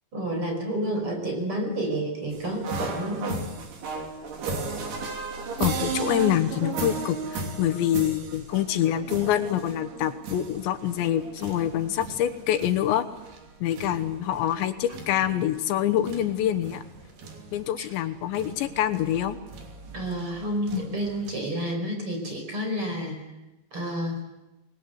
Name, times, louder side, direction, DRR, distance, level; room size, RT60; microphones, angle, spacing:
voice 1, 0.1-3.4 17.8-17.9 19.9-23.2 23.7-24.2, right 1 dB, 30° right, 3 dB, 5.8 m, -30 dB
sound 1, 2.3-21.3, right 4 dB, 65° right, 4.9 m, -36 dB
voice 2, 5.6-13.0 13.6-16.8 17.5-19.4 20.7-20.9, left 11 dB, 80° left, 10 dB, 3.3 m, -26 dB
27.0 x 20.0 x 8.1 m, 1.0 s
omnidirectional pair, 5.1 m